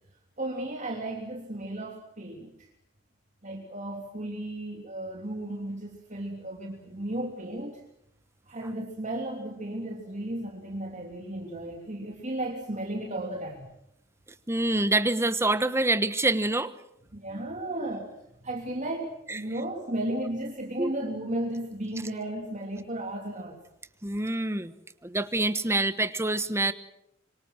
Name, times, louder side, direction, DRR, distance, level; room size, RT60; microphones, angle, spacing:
voice 1, 0.4-2.7 3.4-7.8 8.5-13.7 17.1-23.6, right 1 dB, 40° right, 0 dB, 3.2 m, -34 dB
voice 2, 14.5-16.7 19.3-19.4 20.8-20.9 24.0-24.7 25.0-26.7, right 2 dB, 15° right, 12 dB, 1.2 m, -26 dB
26.0 x 24.5 x 6.3 m, 0.77 s
head